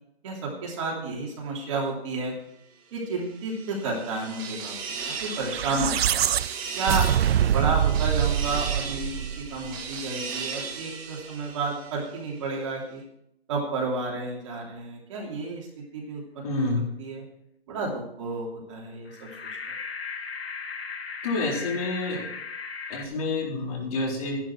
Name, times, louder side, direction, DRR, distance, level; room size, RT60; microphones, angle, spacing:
voice 1, 0.2-2.3 2.9-6.2 6.8-7.1 7.5-13.0 13.5-16.2 17.0-17.3 17.7-19.4, right 3 dB, 30° right, -2 dB, 3.0 m, -31 dB
sound 1, 3.2-12.3, right 5 dB, 15° right, 1.4 m, -37 dB
sound 2, 5.3-9.8, right 10 dB, 75° right, 0.5 m, -24 dB
voice 2, 16.4-16.8 21.2-22.2 22.9-24.4, left 2 dB, 35° left, -2 dB, 4.2 m, -28 dB
sound 3, 19.1-23.1, left 5 dB, 75° left, 1.8 m, -37 dB
13.5 x 11.0 x 4.6 m, 0.76 s
hypercardioid pair, 165°, 31 cm